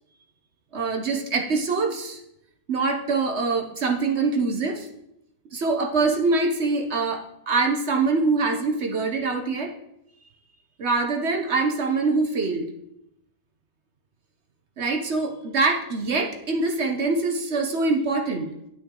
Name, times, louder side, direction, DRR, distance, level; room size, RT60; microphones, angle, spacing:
voice 1, 0.7-2.2 2.7-4.9 5.5-9.7 10.8-12.7 14.8-18.5, right 3 dB, 50° right, 4 dB, 0.8 m, -24 dB
8.8 x 8.3 x 3.7 m, 0.82 s
omnidirectional pair, 2.0 m